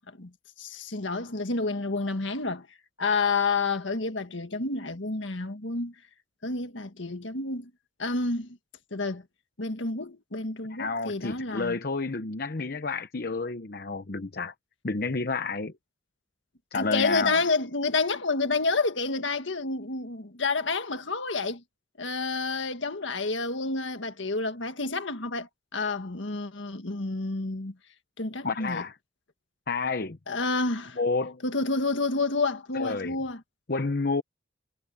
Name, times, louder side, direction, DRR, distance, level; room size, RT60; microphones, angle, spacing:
voice 1, 0.6-2.7 3.0-5.9 6.4-7.7 8.0-8.6 8.9-9.2 9.6-11.8 16.7-21.6 22.0-27.7 28.2-28.8 30.3-31.0 31.4-33.4, left 3 dB, 70° left, 1.8 m, -29 dB
voice 2, 10.7-14.5 14.8-15.7 16.7-17.4 28.4-28.9 29.7-30.2 31.0-31.4 32.7-33.2 33.7-34.2, left 3 dB, 50° left, 0.9 m, -30 dB
head